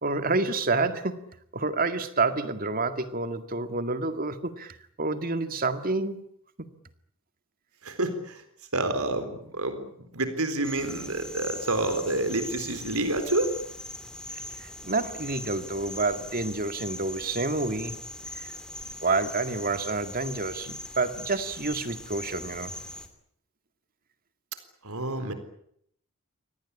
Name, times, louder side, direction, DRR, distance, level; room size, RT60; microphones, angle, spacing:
voice 1, 0.0-1.2 1.5-6.2 14.6-18.0 18.3-18.5 19.0-22.7, right 3 dB, 40° right, 10 dB, 2.1 m, -28 dB
voice 2, 7.8-8.4 8.7-9.9 10.1-13.5 24.8-25.3, right 2 dB, 80° right, 9 dB, 4.1 m, -28 dB
sound 1, 10.6-23.1, left 1 dB, 5° left, 2.9 m, -40 dB
25.5 x 18.5 x 9.9 m, 0.70 s
head